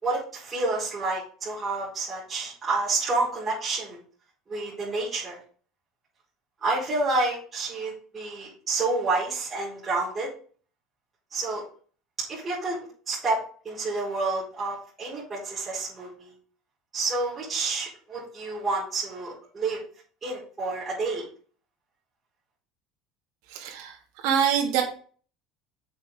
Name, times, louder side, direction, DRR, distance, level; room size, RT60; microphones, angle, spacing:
voice 1, 0.0-4.0 4.5-5.4 6.6-10.3 11.3-11.6 12.3-12.8 13.1-13.4 13.6-16.3 16.9-19.8 20.2-21.2, right 3 dB, 25° right, -8 dB, 4.7 m, -29 dB
voice 2, 23.5-24.8, right 8 dB, 75° right, 1 dB, 2.6 m, -25 dB
7.7 x 6.6 x 3.9 m, 0.43 s
supercardioid pair, 110°, 0 cm